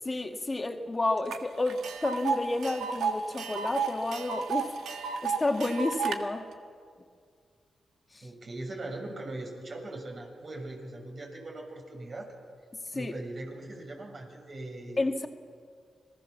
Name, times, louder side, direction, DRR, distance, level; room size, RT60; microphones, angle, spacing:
voice 1, 0.1-6.5 13.0-13.1 15.0-15.3, left 2 dB, 30° left, 4 dB, 2.0 m, -31 dB
Tick, 1.3-1.4 1.7-6.2, right 5 dB, 80° right, 1.6 m, -32 dB
voice 2, 8.2-12.3 12.9-15.0, right 2 dB, 55° right, 1 dB, 6.9 m, -40 dB
26.5 x 19.0 x 7.3 m, 2.1 s
supercardioid pair, 45°, 0 cm